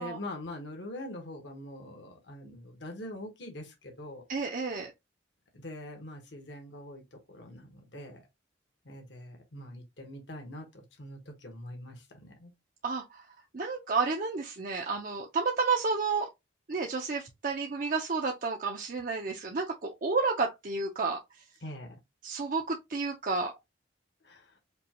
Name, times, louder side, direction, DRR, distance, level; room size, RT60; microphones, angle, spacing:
voice 1, 0.0-4.2 5.5-8.2 8.8-12.5 21.6-21.9 24.2-24.5, left 1 dB, 65° left, 1.2 m, -43 dB
voice 2, 4.3-4.9 12.8-13.3 13.5-16.3 16.7-21.4 22.2-23.5, right 4 dB, 45° right, 0.6 m, -31 dB
5.2 x 2.3 x 2.9 m
head